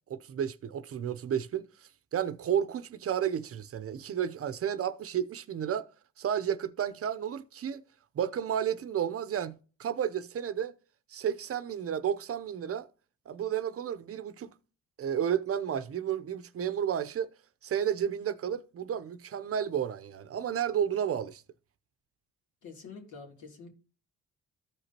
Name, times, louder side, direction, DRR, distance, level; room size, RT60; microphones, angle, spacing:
voice 1, 0.1-1.7 2.1-5.9 6.2-7.8 8.1-10.7 11.1-12.9 13.3-14.5 15.0-17.3 17.6-21.4, right 9 dB, 50° right, 0.7 m, -32 dB
voice 2, 22.6-23.7, left 5 dB, 75° left, 3.0 m, -47 dB
14.0 x 5.0 x 2.8 m
cardioid pair, 90°, 30 cm